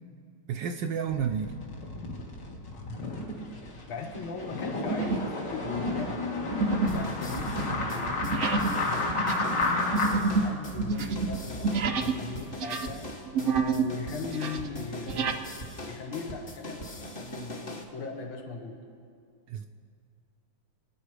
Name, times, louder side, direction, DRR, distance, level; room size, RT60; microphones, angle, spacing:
voice 1, 0.5-1.5 19.5-19.7, right 7 dB, 70° right, 6 dB, 1.1 m, -30 dB
sound 1, 1.1-10.2, left 3 dB, 55° left, 2.3 m, -32 dB
sound 2, 3.2-3.5 4.0-4.3 4.9-5.4 5.6-12.2 12.5-13.9 14.2-15.4, right 4 dB, 90° right, 0.6 m, -29 dB
voice 2, 3.9-6.2 6.9-9.8 10.4-15.4 15.9-16.9 17.2-18.8, left 4 dB, 75° left, 2 dB, 2.3 m, -39 dB
sound 3, 6.9-17.8, equal, 30° left, 1.5 m, -41 dB
27.5 x 9.8 x 4.9 m, 2.3 s
omnidirectional pair, 2.4 m